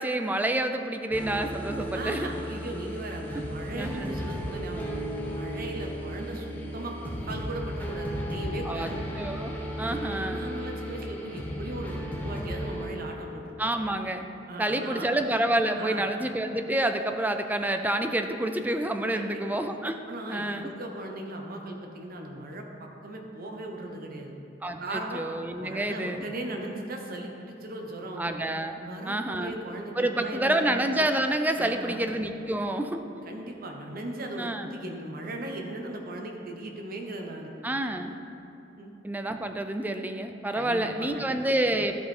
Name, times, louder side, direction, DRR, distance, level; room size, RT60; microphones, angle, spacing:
voice 1, 0.0-2.3 3.3-3.4 3.7-4.1 8.7-10.4 13.6-14.2 14.6-20.0 20.3-20.7 24.6-26.2 28.2-28.8 29.1-29.5 30.0-33.0 34.4-34.7 37.6-38.1 39.0-41.9, right 1 dB, 10° right, 7 dB, 0.4 m, -28 dB
sound 1, 1.1-12.9, equal, 10° left, 1.0 m, -35 dB
voice 2, 1.9-4.9 5.2-9.0 9.8-13.7 14.5-15.1 15.7-16.1 19.1-19.4 20.1-24.3 24.8-25.2 25.6-28.4 28.8-30.7 31.6-32.1 33.2-37.5 38.8-38.9 40.5-41.5, right 1 dB, 50° right, 2 dB, 1.0 m, -38 dB
12.5 x 5.2 x 4.4 m, 2.8 s
head